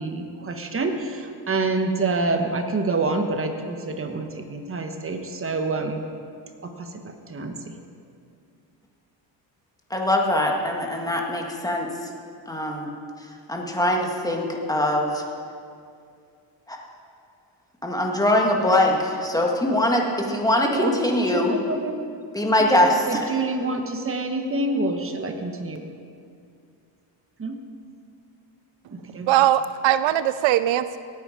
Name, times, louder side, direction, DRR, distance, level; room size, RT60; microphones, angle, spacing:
voice 1, 0.0-6.0 6.6-7.7 20.7-20.9 21.3-22.0 23.1-25.8 27.4-27.6 28.9-29.3, right 3 dB, 30° right, 5 dB, 1.2 m, -27 dB
voice 2, 9.9-11.9 12.5-12.9 13.5-15.2 16.7-16.8 17.8-21.6 22.3-23.3, left 1 dB, 10° left, 0 dB, 1.7 m, -22 dB
voice 3, 29.3-31.0, right 12 dB, 75° right, 13 dB, 0.5 m, -20 dB
18.0 x 9.3 x 5.0 m, 2.3 s
cardioid pair, 120°, 46 cm